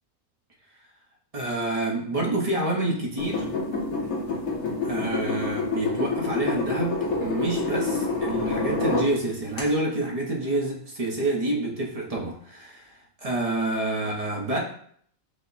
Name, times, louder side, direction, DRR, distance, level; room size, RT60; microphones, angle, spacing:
voice 1, 1.3-3.5 4.8-14.6, right 2 dB, 35° right, -1 dB, 0.7 m, -28 dB
sound 1, 3.2-9.1 9.6-9.7, left 3 dB, 75° left, 1.5 m, -27 dB
5.0 x 2.1 x 3.9 m, 0.62 s
omnidirectional pair, 1.5 m